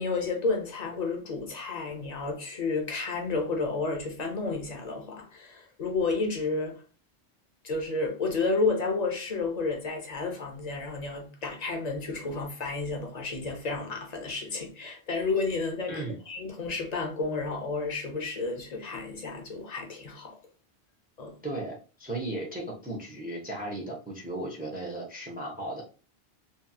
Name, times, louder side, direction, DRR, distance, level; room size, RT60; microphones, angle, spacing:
voice 1, 0.0-6.8 7.6-20.4 21.2-21.3, left 3 dB, 50° left, 0.6 m, -31 dB
voice 2, 15.9-16.2 21.4-25.8, right 1 dB, 15° right, 0.4 m, -36 dB
2.7 x 2.7 x 2.3 m
omnidirectional pair, 1.0 m